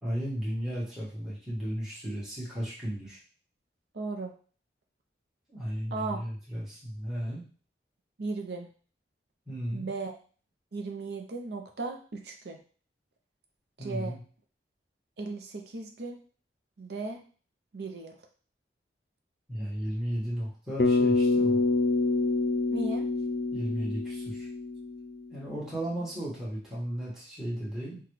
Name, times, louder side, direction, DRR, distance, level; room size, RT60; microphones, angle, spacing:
voice 1, 0.0-3.2 5.5-7.4 9.5-9.9 13.8-14.2 19.5-21.6 23.5-24.5 25.3-28.0, equal, 5° right, -8 dB, 1.3 m, -34 dB
voice 2, 3.9-4.3 5.9-6.2 8.2-8.7 9.7-10.2 10.7-12.6 13.8-14.1 15.2-16.2 16.8-17.2 17.7-18.2 22.7-23.1, right 3 dB, 60° right, 3 dB, 0.6 m, -36 dB
Bass guitar, 20.8-25.2, left 3 dB, 65° left, 0.5 m, -26 dB
5.8 x 2.3 x 3.1 m, 0.40 s
head